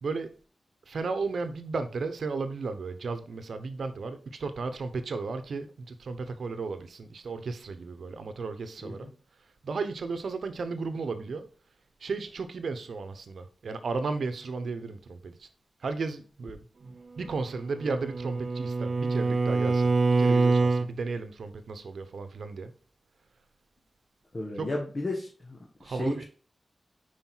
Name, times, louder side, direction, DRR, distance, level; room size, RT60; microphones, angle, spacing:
voice 1, 0.0-0.3 0.9-9.1 9.6-11.5 12.0-15.5 15.8-22.7 24.6-24.7 25.8-26.2, right 4 dB, 80° right, 0.9 m, -34 dB
Bowed string instrument, 17.5-20.9, right 3 dB, 60° right, 0.4 m, -25 dB
voice 2, 24.3-26.2, left 2 dB, 40° left, 1.5 m, -34 dB
5.6 x 4.9 x 4.6 m
cardioid pair, 65°, 0 cm